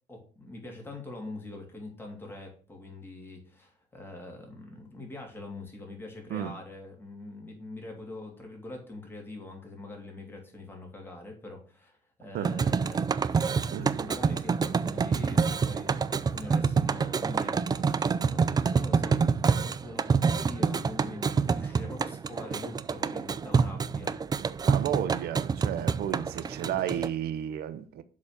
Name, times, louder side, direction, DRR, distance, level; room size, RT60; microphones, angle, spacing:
voice 1, 0.1-24.5, left 2 dB, 15° left, 3.0 m, -44 dB
sound 1, 12.5-27.1, right 5 dB, 25° right, 0.4 m, -27 dB
voice 2, 24.6-28.0, right 10 dB, 70° right, 0.8 m, -32 dB
7.4 x 4.2 x 6.7 m
cardioid pair, 110°, 17 cm